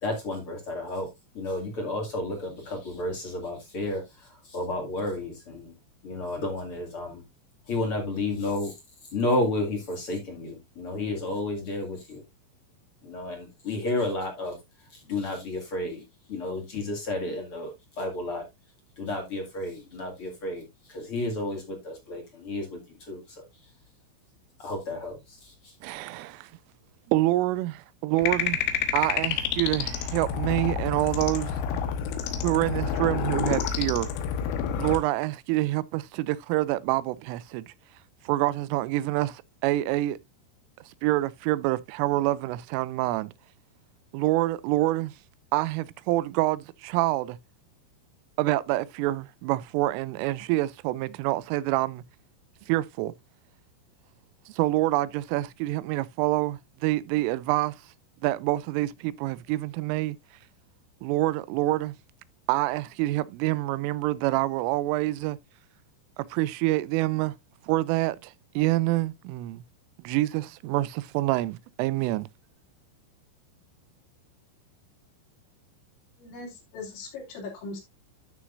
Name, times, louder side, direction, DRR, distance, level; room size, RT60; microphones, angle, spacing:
voice 1, 0.0-1.1 1.3-5.7 6.0-7.2 7.7-8.7 9.1-12.2 13.0-14.6 14.9-16.0 16.3-18.4 19.0-23.4 24.6-25.7, left 2 dB, 40° left, 2.1 m, -32 dB
voice 2, 25.8-26.5 27.1-28.6 28.9-31.9 32.4-34.1 34.8-37.7 38.3-40.2 41.0-43.3 44.1-45.1 45.5-47.4 48.4-52.0 52.7-53.1 54.5-57.8 58.2-60.2 61.0-61.9 62.5-65.4 66.2-67.3 67.6-69.6 70.0-72.3, right 17 dB, 90° right, 3.2 m, -27 dB
sound 1, 28.2-35.0, left 8 dB, 85° left, 3.8 m, -29 dB
voice 3, 76.2-77.8, left 3 dB, 70° left, 5.2 m, -39 dB
12.5 x 6.3 x 2.5 m
omnidirectional pair, 5.6 m